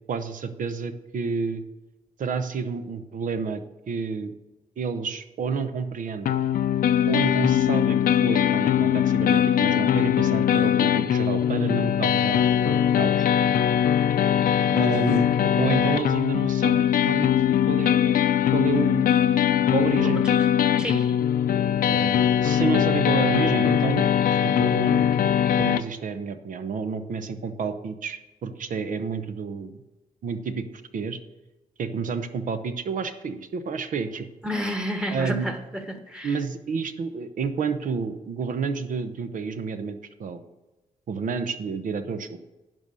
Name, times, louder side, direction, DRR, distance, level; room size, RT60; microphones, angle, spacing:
voice 1, 0.1-1.6 2.2-4.3 4.8-6.4 7.1-13.2 14.7-17.3 17.7-19.2 19.7-20.2 21.9-24.1 24.4-25.1 25.6-29.8 30.2-30.7 30.9-31.2 31.8-34.3 35.1-35.5 36.2-40.4 41.1-42.4, right 5 dB, 65° right, 10 dB, 0.9 m, -30 dB
sound 1, 6.3-25.8, left 9 dB, 75° left, 0.6 m, -21 dB
voice 2, 20.0-20.5 20.8-21.2 34.4-36.4, equal, 5° right, 6 dB, 1.4 m, -31 dB
11.0 x 5.5 x 6.3 m, 1.1 s
cardioid pair, 105°, 15 cm